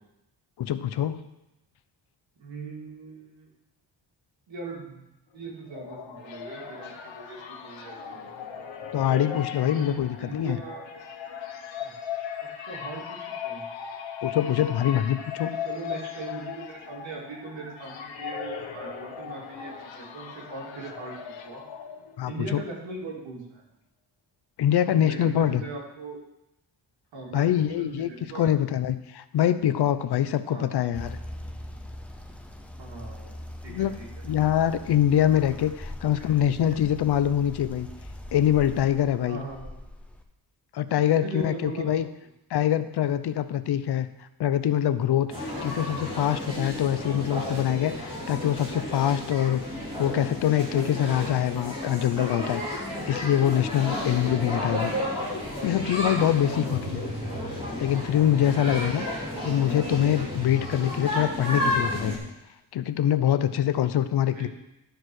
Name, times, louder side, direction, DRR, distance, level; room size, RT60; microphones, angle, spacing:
voice 1, 0.6-1.2 8.9-10.6 14.2-15.6 22.2-22.6 24.6-25.6 27.3-31.2 33.7-33.9 34.2-37.9 38.3-39.4 40.7-42.1 42.5-44.1 44.4-52.6 53.1-55.0 55.6-57.0 57.8-59.0 59.4-62.2 62.7-64.5, left 10 dB, 65° left, 12 dB, 0.6 m, -24 dB
voice 2, 2.4-3.5 4.5-5.0 5.3-8.3 9.6-10.9 11.8-11.9 12.7-13.7 15.6-21.6 22.3-23.6 24.8-26.2 27.1-28.8 30.4-30.7 32.8-33.4 33.6-34.1 34.3-34.7 36.2-36.4 36.7-36.8 39.3-39.7 41.0-42.0 56.4-57.0 58.5-58.9 59.3-59.5 64.2-64.5, right 3 dB, 85° right, -2 dB, 2.9 m, -40 dB
sound 1, 5.4-22.4, left 8 dB, 85° left, 1.1 m, -38 dB
sound 2, 30.9-40.2, left 1 dB, 5° left, 0.5 m, -41 dB
sound 3, 45.3-62.2, left 1 dB, 10° right, 2.6 m, -32 dB
12.0 x 4.9 x 6.2 m, 0.90 s
wide cardioid pair, 175°, 44 cm